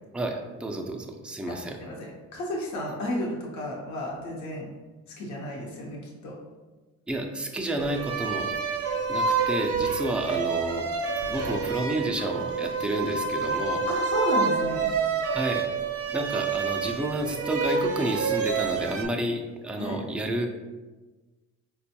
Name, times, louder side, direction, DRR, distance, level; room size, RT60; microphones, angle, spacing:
voice 1, 0.1-1.8 7.1-8.5 9.1-10.9 11.3-13.9 15.2-15.7 16.1-20.5, right 1 dB, 5° right, 2 dB, 0.3 m, -30 dB
voice 2, 1.8-4.7 5.2-6.3 13.9-14.9 19.8-20.0, left 1 dB, 70° left, -3 dB, 0.8 m, -32 dB
sound 1, 7.8-19.0, right 5 dB, 50° right, 0.5 m, -28 dB
4.2 x 2.3 x 2.7 m, 1.2 s
cardioid pair, 90°, 30 cm